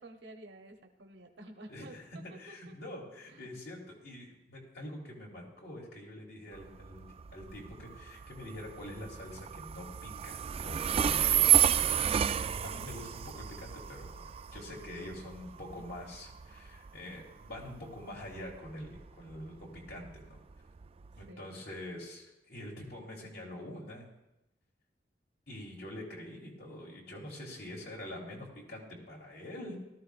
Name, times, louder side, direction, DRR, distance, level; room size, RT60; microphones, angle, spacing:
voice 1, 0.0-2.2 3.3-3.5 14.9-15.4 21.1-21.6 27.3-27.4, right 1 dB, 75° right, 4 dB, 0.9 m, -52 dB
voice 2, 1.7-2.0 2.4-11.9 12.3-20.4 21.2-24.1 25.5-29.8, left 1 dB, 65° left, -2 dB, 3.0 m, -45 dB
Train, 6.5-21.3, right 10 dB, 35° right, 0.3 m, -32 dB
18.0 x 13.0 x 2.4 m, 0.90 s
head